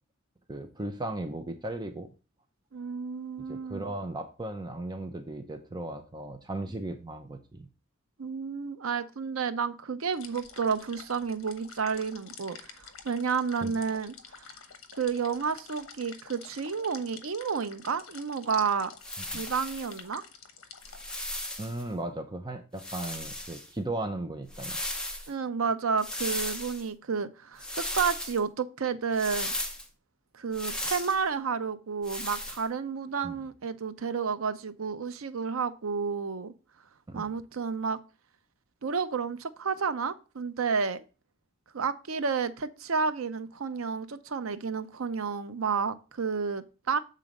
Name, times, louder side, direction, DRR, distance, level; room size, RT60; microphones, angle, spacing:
voice 1, 0.5-2.1 3.5-7.7 13.6-13.7 19.3-19.5 21.6-24.8 33.2-33.4 37.1-37.4, right 2 dB, 20° right, 6 dB, 0.6 m, -36 dB
voice 2, 2.7-3.9 8.2-14.5 15.0-18.9 19.3-20.2 25.3-29.5 30.3-36.5 37.1-38.0 38.8-41.0 41.7-47.0, right 5 dB, 85° right, 12 dB, 0.6 m, -31 dB
sound 1, 10.1-21.2, left 6 dB, 75° left, 1.0 m, -49 dB
sound 2, 19.0-20.0 20.8-21.8 22.8-23.7 24.5-25.3 26.0-26.9 27.6-28.4 29.1-29.9 30.5-31.2 32.0-32.6, left 1 dB, 5° left, 0.9 m, -36 dB
7.5 x 3.9 x 5.2 m, 0.33 s
head